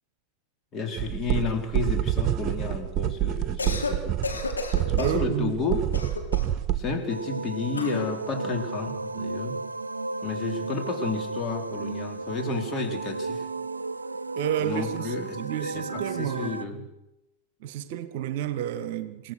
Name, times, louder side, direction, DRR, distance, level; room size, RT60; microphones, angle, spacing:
voice 1, 0.7-4.2 4.9-5.9 6.7-9.6 10.2-13.5 14.6-16.9, left 4 dB, 30° left, 4.1 m, -31 dB
sound 1, 1.0-6.8, right 12 dB, 30° right, 1.4 m, -27 dB
Cough, 3.4-4.0 4.2-5.2 5.9-6.6 7.7-8.1, left 3 dB, 75° left, 3.6 m, -32 dB
voice 2, 5.0-5.6 14.3-16.9 17.6-19.3, right 11 dB, 50° right, 1.2 m, -31 dB
sound 2, 7.1-16.6, right 3 dB, 80° right, 0.8 m, -34 dB
27.5 x 16.5 x 6.5 m
figure-of-eight pair, 90°, 0 cm